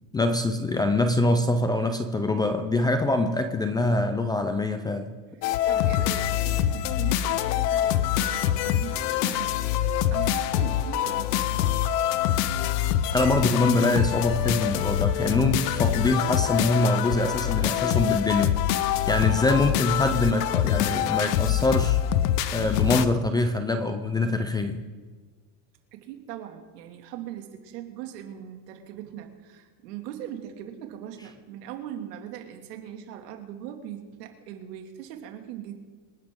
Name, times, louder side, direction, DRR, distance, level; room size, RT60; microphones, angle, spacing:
voice 1, 0.1-5.1 13.1-22.0 22.5-24.8, left 2 dB, 10° left, 8 dB, 0.4 m, -24 dB
sound 1, 5.4-23.0, left 11 dB, 80° left, 1.0 m, -25 dB
voice 2, 5.7-11.4 25.9-35.7, right 10 dB, 80° right, 4 dB, 2.5 m, -40 dB
26.5 x 11.0 x 3.8 m, 1.4 s
supercardioid pair, 145°, 47 cm